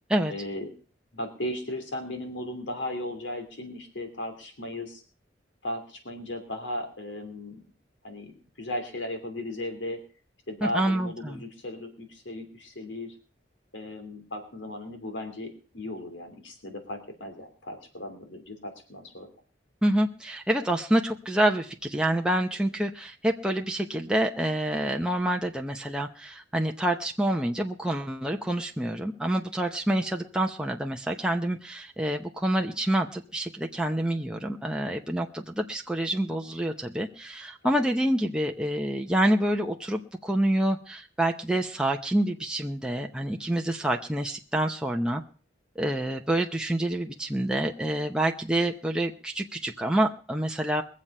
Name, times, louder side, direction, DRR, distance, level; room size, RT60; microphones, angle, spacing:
voice 1, 0.3-0.7 1.1-5.0 5.6-7.6 8.0-8.3 8.6-10.0 10.5-13.2 13.7-15.5 15.7-19.3 37.6-37.8, left 1 dB, 85° left, 6 dB, 2.9 m, -36 dB
voice 2, 10.6-11.4 19.8-45.2 45.8-50.8, right 1 dB, 5° right, 2 dB, 0.7 m, -27 dB
22.0 x 7.5 x 5.5 m, 0.39 s
head